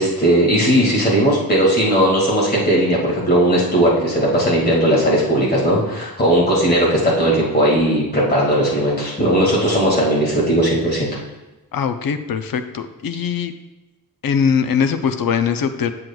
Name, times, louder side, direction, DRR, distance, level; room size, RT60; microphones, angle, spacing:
voice 1, 0.0-11.2, right 1 dB, 25° left, -5 dB, 1.9 m, -17 dB
voice 2, 11.7-13.5 14.2-15.9, left 6 dB, 70° left, 9 dB, 0.5 m, -21 dB
7.8 x 7.5 x 2.3 m, 1.1 s
wide cardioid pair, 180°, 36 cm